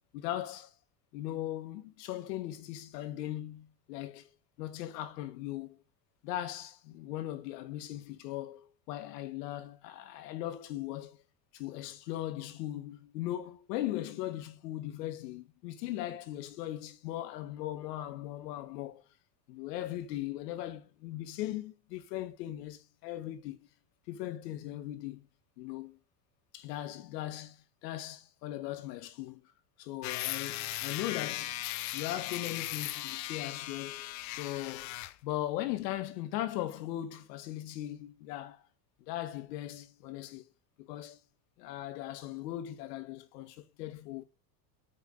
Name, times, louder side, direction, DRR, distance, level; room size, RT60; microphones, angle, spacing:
voice 1, 0.1-0.7 1.1-4.3 4.6-5.8 6.2-11.2 11.5-19.1 19.5-23.6 24.1-25.3 25.6-26.0 26.5-29.4 29.8-31.6 31.9-35.0 35.2-38.6 39.1-40.5 40.8-41.2 41.6-44.2, left 14 dB, 80° left, 1.8 m, -39 dB
sound 1, 30.0-35.2, left 16 dB, 35° left, 0.6 m, -38 dB
9.0 x 5.8 x 3.6 m
supercardioid pair, 145°, 49 cm